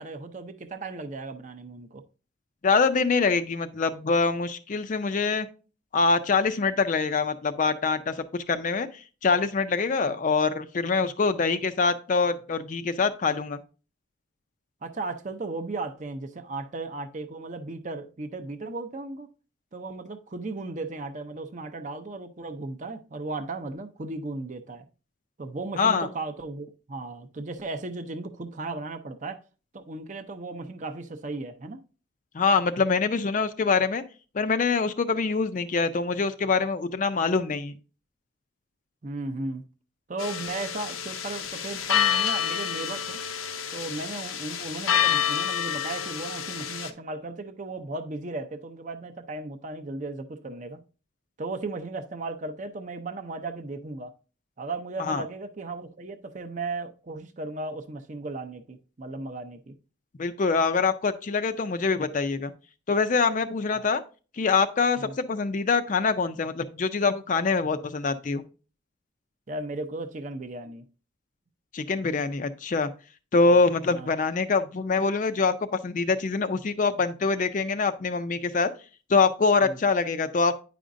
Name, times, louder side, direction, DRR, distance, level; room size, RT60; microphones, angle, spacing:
voice 1, 0.0-2.0 14.8-19.3 19.7-24.8 25.4-29.4 29.7-31.8 39.0-39.6 40.1-43.2 43.7-50.8 51.4-54.1 54.6-59.7 65.0-65.2 69.5-70.9 73.5-73.6 73.9-74.1 79.6-79.8, right 2 dB, 35° right, 0.5 m, -36 dB
voice 2, 2.6-5.5 5.9-13.6 25.8-26.1 32.3-34.0 34.3-37.7 55.0-55.2 60.2-62.5 62.9-64.0 64.3-68.4 71.7-72.9 73.3-78.7 79.1-80.6, left 4 dB, 40° left, 0.4 m, -24 dB
sound 1, 40.2-46.9, left 9 dB, 85° left, 0.7 m, -28 dB
9.3 x 5.0 x 2.5 m
head